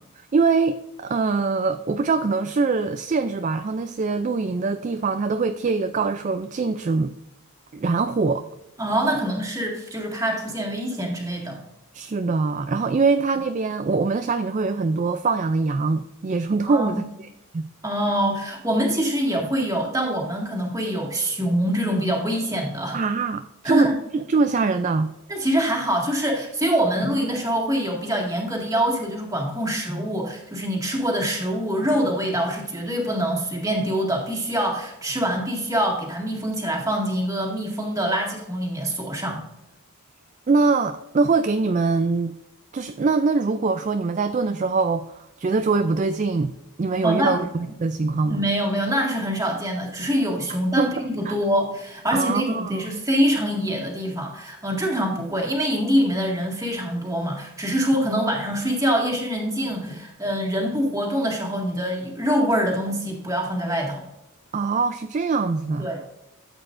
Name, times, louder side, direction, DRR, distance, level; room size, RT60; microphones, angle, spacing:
voice 1, 0.3-7.1 7.7-8.5 11.9-17.0 17.5-17.7 22.9-25.1 40.5-42.3 42.7-48.4 50.8-50.9 51.3-51.4 52.1-53.0 64.5-65.9, right 4 dB, 35° right, 0.3 m, -23 dB
voice 2, 8.8-11.6 16.7-17.0 17.8-23.0 23.6-24.0 25.3-39.4 47.0-47.4 48.2-64.1 65.8-66.0, equal, 15° right, 1.9 m, -24 dB
13.0 x 8.1 x 2.6 m
head